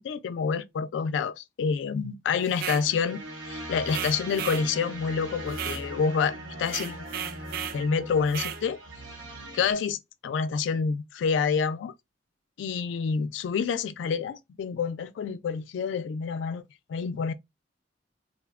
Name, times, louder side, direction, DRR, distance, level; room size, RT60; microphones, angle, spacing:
voice 1, 0.0-3.2 3.5-7.0 7.7-8.8 9.5-11.9 12.6-16.6 16.9-17.3, left 6 dB, 85° left, 0.3 m, -28 dB
sound 1, 2.5-2.9 3.9-4.7 5.5-5.9 6.7-7.8 8.3-8.6, right 10 dB, 55° right, 0.3 m, -34 dB
sound 2, 2.5-9.7, right 1 dB, 90° right, 0.9 m, -40 dB
3.2 x 2.1 x 2.3 m
head